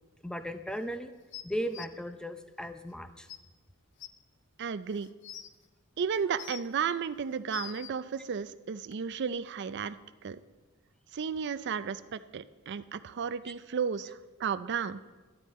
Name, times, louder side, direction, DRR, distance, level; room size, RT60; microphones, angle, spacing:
voice 1, 0.2-1.1 1.4-3.3, equal, 5° left, 9 dB, 0.6 m, -36 dB
sound 1, 1.3-1.9 2.9-3.0 3.3-3.4 4.0-4.1 4.9-5.5 6.1-6.8 7.3-7.9 8.9-9.0, left 11 dB, 60° left, 0.6 m, -44 dB
voice 2, 4.6-5.1 6.0-10.0 10.2-10.4 11.1-15.0, right 6 dB, 55° right, 13 dB, 0.4 m, -33 dB
13.0 x 11.5 x 4.2 m, 1.3 s
head